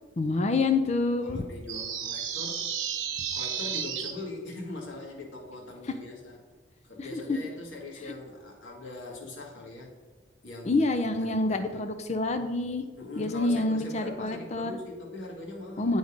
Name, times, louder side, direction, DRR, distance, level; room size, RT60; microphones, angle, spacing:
voice 1, 0.2-1.4 7.0-7.4 10.7-12.8 13.2-14.7 15.8-16.0, left 2 dB, 35° left, 8 dB, 0.5 m, -27 dB
voice 2, 1.2-2.7 3.3-6.4 6.8-9.9 10.4-10.9 11.3-11.9 13.0-16.0, left 2 dB, 80° left, -1 dB, 1.7 m, -41 dB
sound 1, 1.7-4.1, right 8 dB, 75° right, 0.8 m, -32 dB
9.6 x 3.9 x 5.0 m, 1.3 s
head